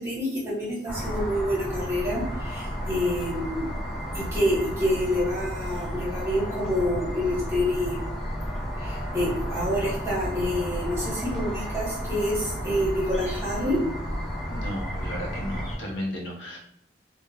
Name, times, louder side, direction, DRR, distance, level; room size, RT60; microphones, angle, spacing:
voice 1, 0.0-3.7 4.1-7.9 8.8-13.8, equal, 15° right, -7 dB, 1.0 m, -27 dB
sound 1, 0.9-15.8, equal, ahead, 0.6 m, -32 dB
voice 2, 14.5-16.6, equal, 75° left, -1 dB, 0.7 m, -34 dB
2.3 x 2.0 x 3.2 m, 0.77 s
head